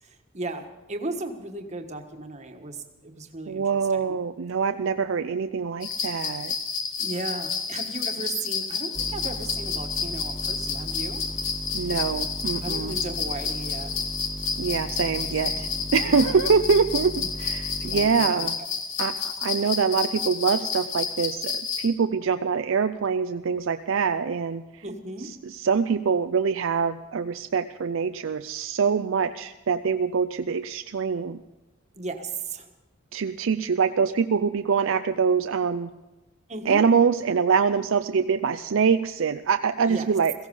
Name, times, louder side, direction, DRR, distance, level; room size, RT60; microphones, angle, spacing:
voice 1, 0.0-3.6 3.9-4.2 7.0-11.2 12.6-13.9 15.5-16.3 17.2-17.3 17.8-18.5 24.8-25.3 31.9-32.7 36.5-36.8 39.8-40.1, right 2 dB, 35° right, 5 dB, 1.4 m, -36 dB
voice 2, 3.5-6.5 11.7-13.0 14.6-17.1 17.4-18.6 19.0-24.6 25.4-31.4 33.1-35.9 36.7-40.3, right 6 dB, 65° right, 9 dB, 0.5 m, -24 dB
sound 1, 5.8-21.9, left 6 dB, 65° left, 1.6 m, -30 dB
sound 2, 8.9-18.0, equal, ahead, 0.5 m, -37 dB
17.0 x 15.5 x 5.4 m, 1.1 s
head